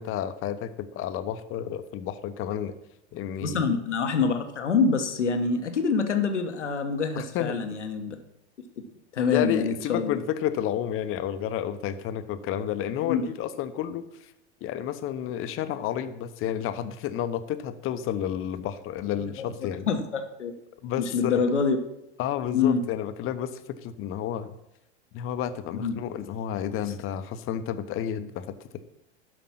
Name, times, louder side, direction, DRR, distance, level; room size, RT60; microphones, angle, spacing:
voice 1, 0.0-2.7 3.1-3.6 7.1-7.6 9.3-14.3 14.6-19.9 20.8-21.5 22.2-24.5 25.1-28.5, left 10 dB, 40° left, 11 dB, 0.9 m, -31 dB
voice 2, 3.4-8.2 8.8-8.9 9.1-10.2 13.0-13.2 19.2-19.3 19.9-20.5 21.0-21.8 22.5-22.8 25.7-26.0, left 5 dB, 85° left, 6 dB, 1.2 m, -26 dB
12.0 x 5.2 x 5.8 m, 0.86 s
hypercardioid pair, 90°, 35 cm